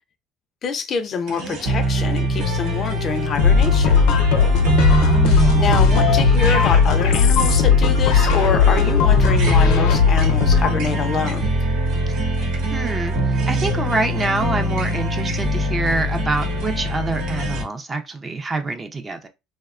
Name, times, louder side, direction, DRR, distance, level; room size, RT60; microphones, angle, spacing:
voice 1, 0.6-4.0 5.5-11.5, left 5 dB, 40° left, 0.4 m, -26 dB
sound 1, 1.3-17.6, equal, 70° right, 0.9 m, -23 dB
sound 2, 3.4-10.8, left 6 dB, 80° left, 0.7 m, -17 dB
voice 2, 4.9-5.7 12.1-12.2 12.7-19.3, right 3 dB, 20° right, 0.5 m, -26 dB
2.7 x 2.1 x 2.4 m
cardioid pair, 115°, 0 cm